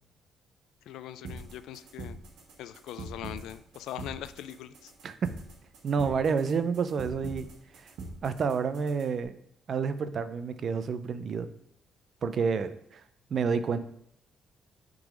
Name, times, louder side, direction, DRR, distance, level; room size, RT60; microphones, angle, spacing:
voice 1, 0.8-2.2 2.6-4.9, left 11 dB, 85° left, 13 dB, 0.3 m, -41 dB
sound 1, 1.2-9.2, right 2 dB, 85° right, 1.3 m, -44 dB
voice 2, 5.8-7.5 7.8-7.9 8.2-9.3 9.7-11.5 12.2-13.0 13.3-13.8, right 5 dB, 55° right, 12 dB, 0.5 m, -29 dB
5.7 x 3.9 x 5.1 m, 0.75 s
cardioid pair, 90°, 0 cm